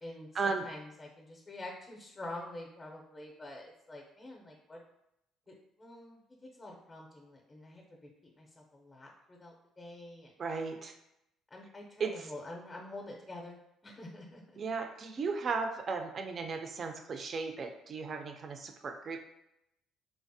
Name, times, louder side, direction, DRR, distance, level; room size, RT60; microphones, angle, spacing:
voice 1, 0.0-4.8 5.5-6.2 6.5-10.3 11.5-14.4, left 2 dB, 20° left, 0 dB, 0.5 m, -47 dB
voice 2, 10.4-10.9 12.0-12.3 14.6-19.2, right 4 dB, 40° right, 6 dB, 0.4 m, -35 dB
3.2 x 2.0 x 2.6 m, 0.83 s
cardioid pair, 105°, 0 cm